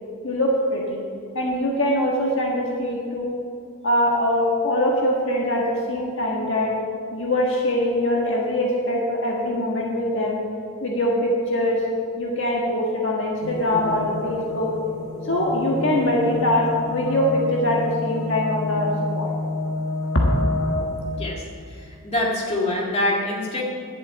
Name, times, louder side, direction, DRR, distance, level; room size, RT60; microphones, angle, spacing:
voice 1, 0.2-1.0 1.3-3.3 3.8-6.7 7.1-10.4 10.8-11.8 12.2-14.7 15.3-19.3 20.1-20.3, left 1 dB, 55° left, -2 dB, 1.6 m, -23 dB
sound 1, 13.4-21.1, left 2 dB, 80° left, 2.8 m, -29 dB
voice 2, 21.7-23.6, left 1 dB, 25° left, -3 dB, 2.1 m, -25 dB
11.0 x 7.9 x 8.0 m, 2.2 s
head